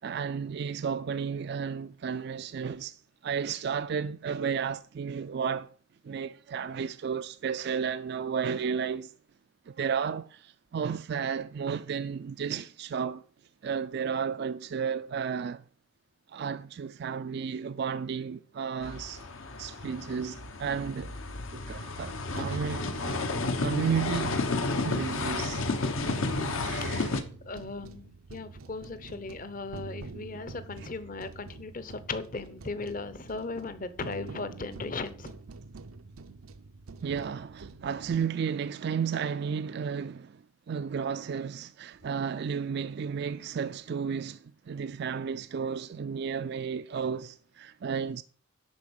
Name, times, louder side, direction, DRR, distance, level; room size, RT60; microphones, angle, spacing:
voice 1, 0.0-5.7 6.0-9.1 9.7-13.2 13.6-15.6 16.3-19.2 19.6-21.2 21.5-22.9 23.6-24.5 24.8-25.6 26.6-27.1 30.8-30.9 37.0-48.2, right 6 dB, 50° right, 0.3 m, -33 dB
sound 1, 18.8-27.2, left 3 dB, 75° left, 1.2 m, -32 dB
sound 2, 22.3-38.2, right 3 dB, 85° right, 0.6 m, -46 dB
voice 2, 27.5-35.4, left 3 dB, 40° left, 0.8 m, -37 dB
10.5 x 4.3 x 7.1 m
head